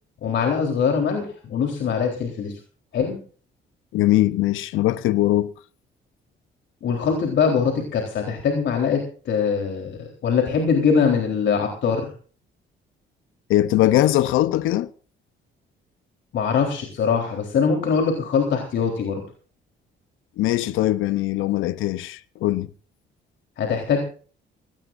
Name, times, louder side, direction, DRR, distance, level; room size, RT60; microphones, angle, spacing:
voice 1, 0.2-2.6 2.9-3.2 6.8-12.1 16.3-19.2 23.6-24.0, left 6 dB, 65° left, 3.9 m, -22 dB
voice 2, 3.9-5.5 13.5-14.9 20.4-22.7, left 15 dB, 90° left, 0.8 m, -21 dB
20.0 x 18.5 x 2.6 m
cardioid pair, 90°, 20 cm